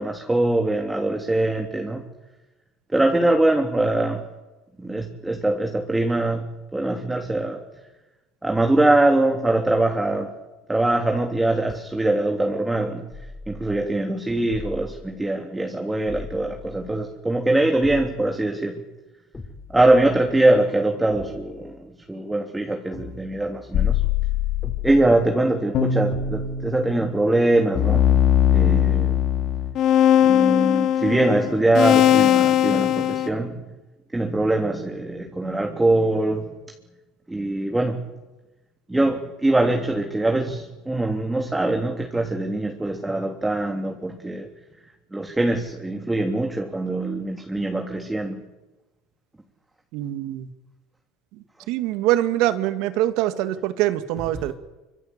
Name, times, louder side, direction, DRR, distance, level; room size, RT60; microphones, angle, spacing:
voice 1, 0.0-2.0 2.9-4.2 4.8-7.6 8.4-10.3 10.7-13.1 13.5-18.8 19.7-24.0 24.8-28.1 28.5-29.2 30.2-33.6 34.1-36.5 37.3-38.0 38.9-44.5 45.1-48.4 54.2-54.5, right 2 dB, 10° right, 2 dB, 3.3 m, -22 dB
sound 1, 13.1-13.9 14.5-15.1 16.1-17.1 17.8-18.4 19.3-20.4 21.1-21.7 22.9-24.0 24.6-25.3 26.1-26.7, left 3 dB, 20° left, 5.9 m, -40 dB
sound 2, 23.7-25.1 25.8-27.1 27.8-33.3, left 10 dB, 55° left, 3.0 m, -20 dB
voice 2, 49.9-50.5 51.7-54.5, right 14 dB, 75° right, 10 dB, 2.3 m, -23 dB
25.5 x 25.0 x 8.3 m, 1.1 s
supercardioid pair, 105°, 0 cm